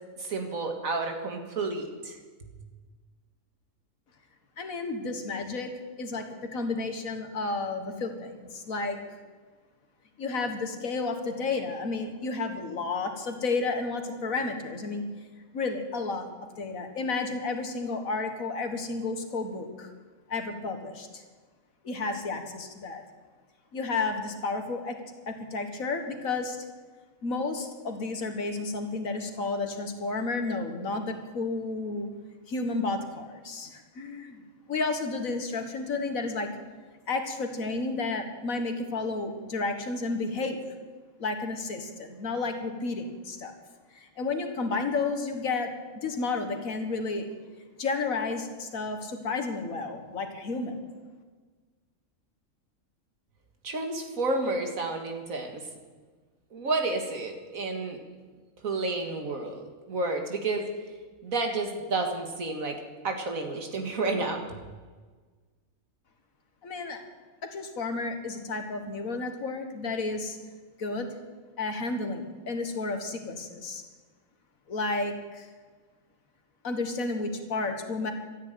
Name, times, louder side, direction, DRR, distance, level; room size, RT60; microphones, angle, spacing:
voice 1, 0.2-2.2 53.6-55.7 56.5-58.0 58.6-60.7 61.2-62.8 63.0-64.6, right 3 dB, 85° right, 4 dB, 2.3 m, -30 dB
voice 2, 4.6-5.7 6.0-9.0 10.2-15.0 15.5-16.3 16.6-19.9 20.3-21.2 21.8-23.0 23.7-25.0 25.3-26.7 27.2-32.1 32.5-34.4 34.7-36.5 37.1-40.6 41.2-43.5 43.9-47.3 47.8-50.8 66.6-67.1 67.4-70.4 70.8-71.1 71.6-73.8 74.7-75.5 76.6-78.1, left 3 dB, 85° left, 6 dB, 2.0 m, -32 dB
13.0 x 9.7 x 9.3 m, 1.4 s
omnidirectional pair, 1.4 m